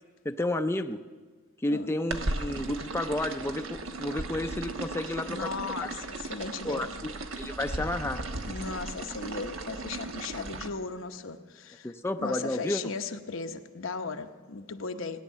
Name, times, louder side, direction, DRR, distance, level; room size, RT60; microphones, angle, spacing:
voice 1, 0.2-1.0 1.6-5.5 5.8-5.9 6.6-6.9 7.4-8.3 11.8-12.8, left 1 dB, 10° left, 7 dB, 0.5 m, -31 dB
sound 1, 2.1-10.7, right 2 dB, 85° right, 1.2 m, -36 dB
voice 2, 5.2-6.9 8.5-11.9 12.2-15.2, left 4 dB, 80° left, 6 dB, 0.9 m, -37 dB
17.5 x 10.0 x 7.4 m, 1.4 s
head